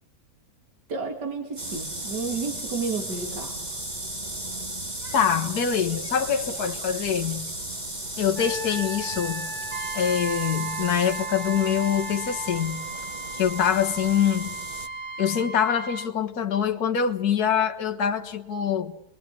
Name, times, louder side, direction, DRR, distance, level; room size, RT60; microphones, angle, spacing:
voice 1, 0.9-3.6, right 4 dB, 75° right, 4 dB, 3.2 m, -31 dB
sound 1, 1.6-14.9, right 1 dB, 25° right, 2.1 m, -35 dB
voice 2, 5.1-7.5 8.2-9.5 9.9-12.9 13.3-14.5 15.2-19.0, left 8 dB, 65° left, 6 dB, 1.8 m, -24 dB
Wind instrument woodwind instrument, 8.3-12.6, equal, ahead, 1.7 m, -37 dB
Trumpet, 9.7-16.1, right 4 dB, 45° right, 1.8 m, -36 dB
29.5 x 21.5 x 8.3 m, 0.78 s
omnidirectional pair, 1.8 m